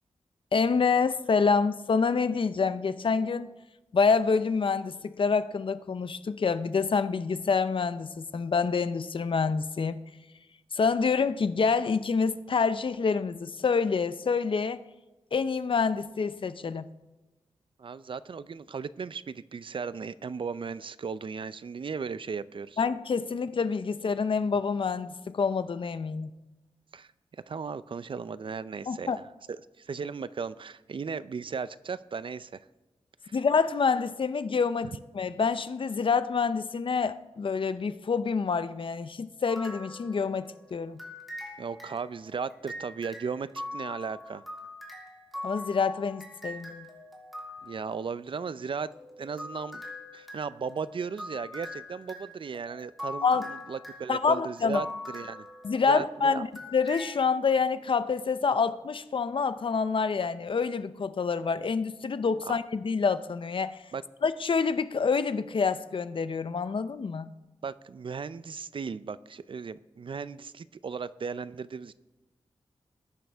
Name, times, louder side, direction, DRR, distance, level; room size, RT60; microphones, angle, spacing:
voice 1, 0.5-3.5 3.9-10.0 10.7-14.8 15.3-16.9 22.8-26.3 28.9-29.2 33.3-41.0 45.4-46.9 53.2-53.5 54.1-54.8 55.6-63.8 64.2-67.3, left 5 dB, 55° left, 12 dB, 0.6 m, -27 dB
voice 2, 17.8-22.8 26.9-29.3 29.8-32.7 33.2-33.4 41.6-44.4 47.6-48.9 49.2-49.8 50.1-55.5 55.8-56.4 62.4-62.6 63.9-64.0 67.6-71.9, right 5 dB, 55° right, 16 dB, 0.5 m, -36 dB
sound 1, 39.5-40.6 41.0-47.9 48.9-56.1 56.5-57.1, left 1 dB, ahead, 3.2 m, -42 dB
20.5 x 10.5 x 3.5 m, 1.1 s
wide cardioid pair, 100°, 10 cm